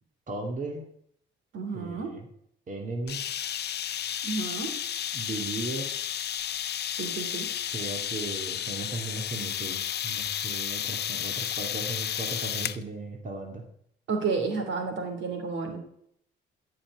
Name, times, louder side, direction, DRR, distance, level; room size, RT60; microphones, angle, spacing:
voice 1, 0.3-0.9 1.7-2.3 2.7-3.3 5.1-5.9 7.7-13.6, right 3 dB, 40° right, 2 dB, 2.4 m, -36 dB
voice 2, 1.5-2.1 4.2-4.7 7.0-7.5 14.1-15.8, right 4 dB, 70° right, 4 dB, 3.0 m, -31 dB
sound 1, 3.1-12.8, left 10 dB, 55° left, 0.7 m, -32 dB
14.0 x 5.8 x 9.7 m, 0.71 s
cardioid pair, 90°, 20 cm